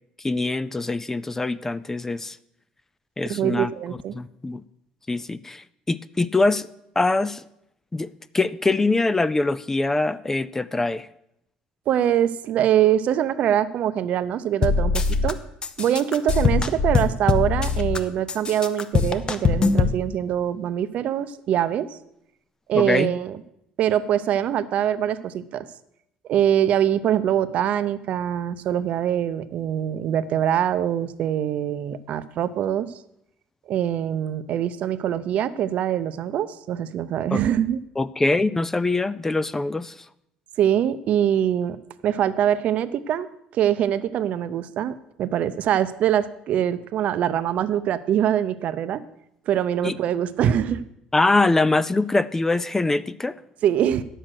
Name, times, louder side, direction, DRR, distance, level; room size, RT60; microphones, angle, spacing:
voice 1, 0.2-2.4 3.2-3.7 4.1-4.6 5.1-6.7 7.0-7.4 7.9-8.1 8.3-11.1 22.7-23.1 37.3-37.4 38.0-40.0 49.8-50.0 51.1-53.4, left 2 dB, 15° left, 17 dB, 0.4 m, -23 dB
voice 2, 3.3-4.1 11.9-15.4 15.8-21.9 22.7-23.4 23.8-25.7 26.3-32.9 33.7-37.8 40.6-41.8 42.0-49.0 49.5-50.8 53.6-54.0, right 10 dB, 60° right, 13 dB, 0.7 m, -23 dB
sound 1, 14.6-15.3 15.6-18.0 18.3-20.0, left 4 dB, 30° left, 0.8 m, -22 dB
10.0 x 7.7 x 6.4 m, 0.79 s
cardioid pair, 100°, 3 cm